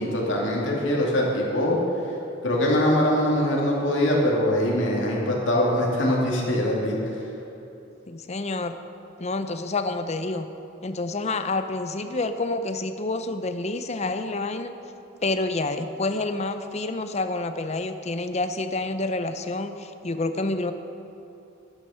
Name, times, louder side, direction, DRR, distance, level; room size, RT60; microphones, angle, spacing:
voice 1, 0.0-1.8 2.4-7.0, left 1 dB, 65° left, -3 dB, 2.5 m, -23 dB
voice 2, 8.1-8.7 9.2-10.5 10.8-14.7 15.2-20.7, left 2 dB, 35° left, 9 dB, 0.6 m, -28 dB
12.0 x 10.0 x 5.7 m, 2.9 s
head